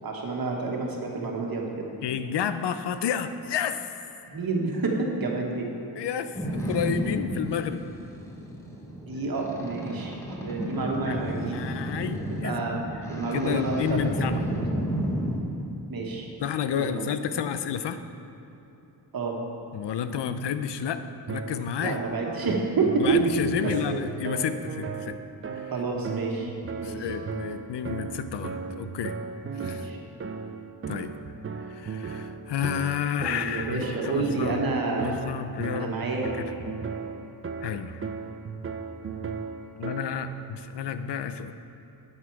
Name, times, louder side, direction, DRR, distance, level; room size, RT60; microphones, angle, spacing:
voice 1, 0.0-1.9 4.3-5.7 9.0-10.2 10.4-11.6 12.3-12.8 13.1-14.6 15.9-16.3 16.8-17.1 19.1-19.4 21.8-23.2 23.6-24.0 25.7-26.5 26.8-27.1 29.6-30.0 33.3-35.1 35.7-36.3, right 3 dB, 60° right, 0 dB, 1.4 m, -29 dB
voice 2, 2.0-3.9 6.0-7.8 11.1-12.5 13.3-14.5 16.4-18.0 19.7-22.0 23.0-25.2 25.5-25.7 26.8-29.2 29.5-29.9 30.9-31.1 31.7-34.6 35.0-35.9 36.4-36.5 37.6-38.0 39.8-41.5, left 8 dB, 80° left, 10 dB, 0.6 m, -31 dB
Boat Water vehicle, 6.3-15.4, right 1 dB, 5° left, 1.0 m, -32 dB
sound 1, 21.3-40.3, right 5 dB, 35° right, 0.4 m, -36 dB
9.6 x 8.1 x 4.7 m, 3.0 s
wide cardioid pair, 165°, 41 cm